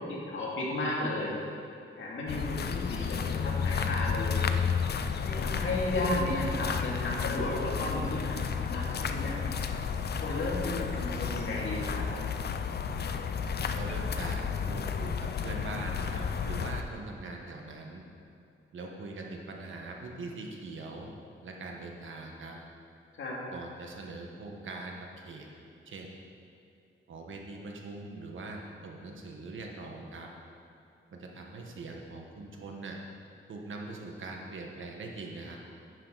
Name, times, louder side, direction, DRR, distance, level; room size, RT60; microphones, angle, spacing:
voice 1, 0.0-1.4 2.0-4.5 5.2-8.4 8.7-9.3 10.2-12.0 23.2-23.4, left 1 dB, 70° left, -5 dB, 2.6 m, -33 dB
sound 1, 2.3-16.8, left 6 dB, 50° left, 0.5 m, -32 dB
voice 2, 13.8-18.0 18.7-21.1 21.4-22.6 23.5-25.5 25.8-26.1 27.1-30.3 31.1-33.0 33.5-35.6, right 3 dB, 70° right, 1 dB, 1.5 m, -42 dB
11.0 x 9.7 x 4.1 m, 2.6 s
wide cardioid pair, 130°, 21 cm